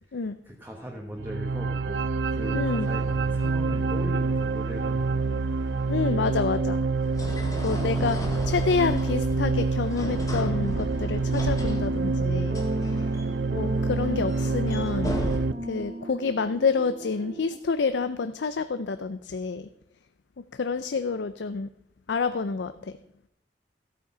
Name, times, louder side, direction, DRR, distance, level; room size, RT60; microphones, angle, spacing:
voice 1, 0.1-2.0 2.3-5.3 8.2-8.5, equal, 10° right, 0 dB, 1.4 m, -39 dB
sound 1, 1.2-15.5, right 3 dB, 75° right, 0.5 m, -27 dB
voice 2, 2.5-2.9 5.9-6.8 7.6-8.2 8.5-12.6 13.5-15.2 15.7-19.7 20.5-21.7 22.1-22.9, left 4 dB, 70° left, 11 dB, 0.5 m, -28 dB
sound 2, 2.8-15.4, equal, 20° left, 2.1 m, -37 dB
sound 3, 10.5-17.6, right 1 dB, 40° right, 0.9 m, -36 dB
14.0 x 8.6 x 5.6 m, 0.79 s
head